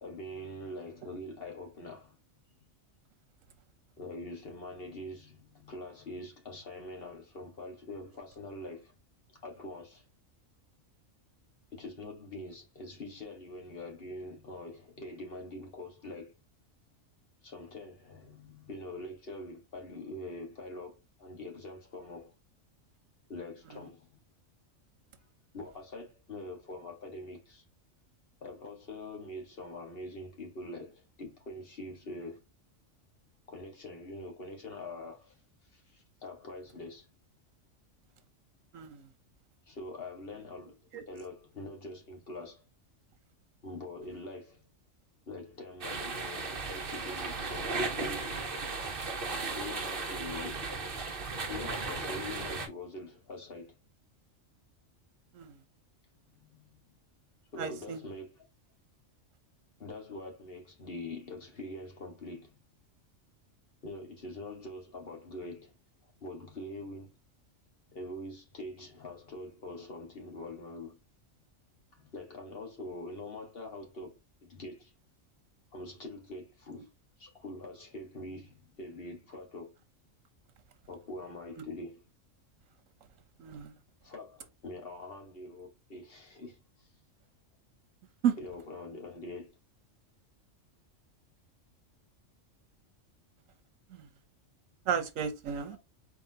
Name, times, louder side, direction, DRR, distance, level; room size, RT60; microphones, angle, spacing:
voice 1, 0.0-2.2 4.0-8.9 9.3-10.0 11.7-16.3 17.4-22.3 23.3-24.1 25.5-27.6 28.4-32.4 33.5-35.4 35.7-37.1 39.7-40.7 41.1-42.6 43.6-44.6 45.3-48.3 49.6-50.6 51.5-53.8 56.3-56.8 57.5-58.5 59.8-62.6 63.8-65.7 66.2-67.1 67.9-71.0 71.9-74.9 75.7-76.9 77.2-79.7 80.9-82.0 84.0-86.9 88.4-89.5 95.7-95.8, left 2 dB, 45° left, 1.8 m, -44 dB
voice 2, 38.7-39.1 40.9-41.0 55.3-55.6 57.6-58.0 83.4-83.7 88.2-88.4 93.9-94.1 94.9-95.8, right 8 dB, 80° right, 1.2 m, -33 dB
sound 1, 45.8-52.7, right 3 dB, 45° right, 1.2 m, -36 dB
4.3 x 3.7 x 2.8 m
omnidirectional pair, 1.4 m